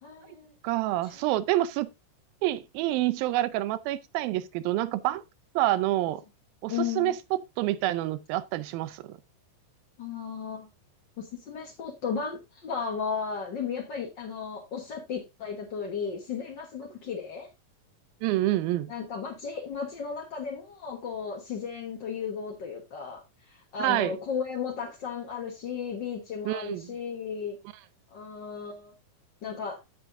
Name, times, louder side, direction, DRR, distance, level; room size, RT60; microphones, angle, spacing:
voice 1, 0.0-0.5 1.0-1.1 6.7-7.1 10.0-10.7 11.2-17.5 18.9-27.6 28.1-28.9 29.4-29.8, left 6 dB, 60° left, 1.1 m, -35 dB
voice 2, 0.6-1.9 2.4-5.2 5.6-6.2 6.6-9.2 18.2-18.9 23.8-24.1 26.5-26.9, right 15 dB, 85° right, 2.5 m, -27 dB
16.0 x 5.7 x 2.6 m
omnidirectional pair, 4.1 m